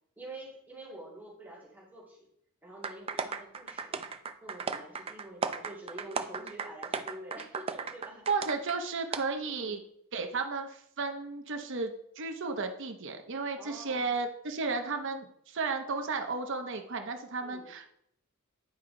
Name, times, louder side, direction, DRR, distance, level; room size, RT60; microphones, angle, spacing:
voice 1, 0.2-2.3 2.6-4.0 4.4-8.3 9.4-9.8 13.6-14.1 17.4-17.7, right 1 dB, 10° right, -6 dB, 2.1 m, -47 dB
sound 1, 2.8-8.8 9.1-9.2, right 5 dB, 25° right, 0.4 m, -36 dB
voice 2, 8.3-9.8 10.1-17.9, right 4 dB, 55° right, 5 dB, 0.7 m, -34 dB
9.6 x 4.8 x 3.8 m, 0.71 s
head